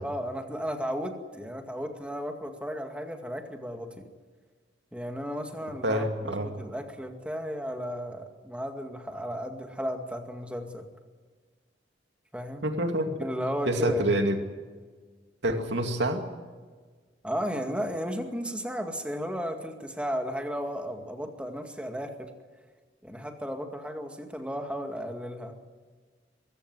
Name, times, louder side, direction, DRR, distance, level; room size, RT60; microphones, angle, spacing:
voice 1, 0.0-4.0 4.9-10.9 12.3-12.6 13.2-14.0 17.2-22.3 23.0-25.5, equal, 5° right, 4 dB, 2.1 m, -34 dB
voice 2, 5.8-6.5 12.6-13.1 13.7-14.4 15.4-16.2, right 1 dB, 75° right, 5 dB, 2.4 m, -26 dB
23.0 x 15.5 x 9.5 m, 1.4 s
head